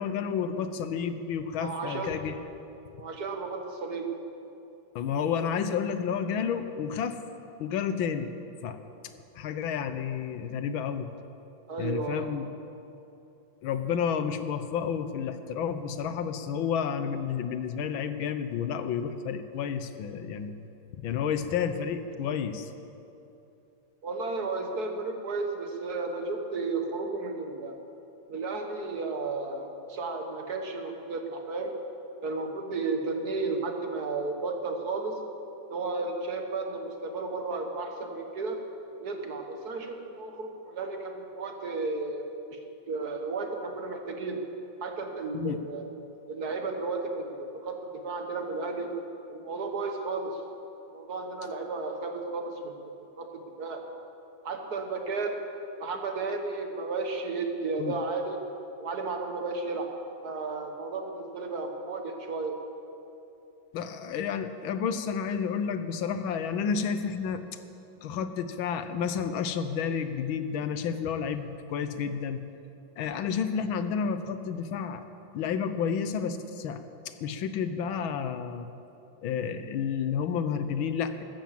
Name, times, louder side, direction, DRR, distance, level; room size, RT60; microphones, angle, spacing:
voice 1, 0.0-2.3 4.9-7.2 7.6-8.3 8.6-8.8 9.3-11.1 11.8-12.5 13.6-20.5 21.0-22.7 45.3-45.6 57.8-57.9 63.7-67.4 68.0-72.4 73.0-75.0 75.3-76.8 77.2-78.7 79.2-81.2, left 7 dB, 80° left, 10 dB, 1.7 m, -30 dB
voice 2, 1.6-2.1 3.0-4.1 11.7-12.3 24.0-27.8 28.3-31.7 32.2-35.2 35.7-38.6 39.0-42.6 42.9-44.4 44.8-45.9 46.3-48.9 49.3-50.4 50.9-52.7 53.2-53.8 54.4-55.3 55.8-58.4 58.8-59.9 60.2-62.6, right 3 dB, 55° right, 4 dB, 1.8 m, -33 dB
14.5 x 13.0 x 7.5 m, 2.8 s
omnidirectional pair, 2.2 m